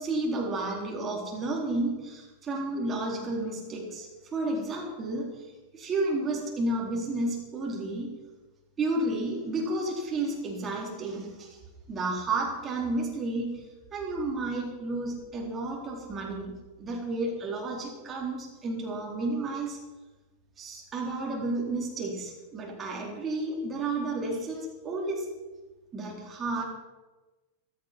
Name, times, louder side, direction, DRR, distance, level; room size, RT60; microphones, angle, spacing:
voice 1, 0.0-5.5 5.7-8.1 8.8-11.6 11.9-13.7 13.9-19.8 20.6-25.3 25.9-26.6, right 2 dB, 25° right, -1 dB, 4.0 m, -32 dB
15.0 x 13.0 x 6.0 m, 1.2 s
figure-of-eight pair, 90°, 0 cm